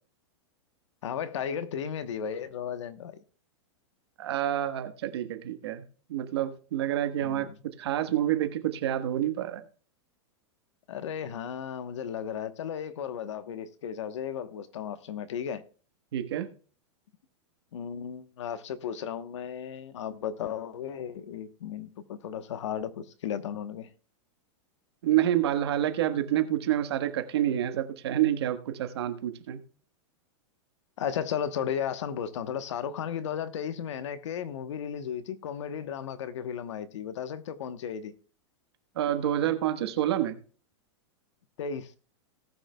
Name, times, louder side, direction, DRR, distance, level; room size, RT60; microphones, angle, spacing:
voice 1, 1.0-3.2 7.2-7.5 10.9-15.6 17.7-23.9 31.0-38.1 41.6-41.9, left 8 dB, 70° left, 1.1 m, -35 dB
voice 2, 4.2-7.5 7.8-9.6 16.1-16.5 25.0-29.6 38.9-40.4, right 12 dB, 60° right, 1.3 m, -28 dB
19.0 x 6.5 x 2.2 m
supercardioid pair, 180°, 16 cm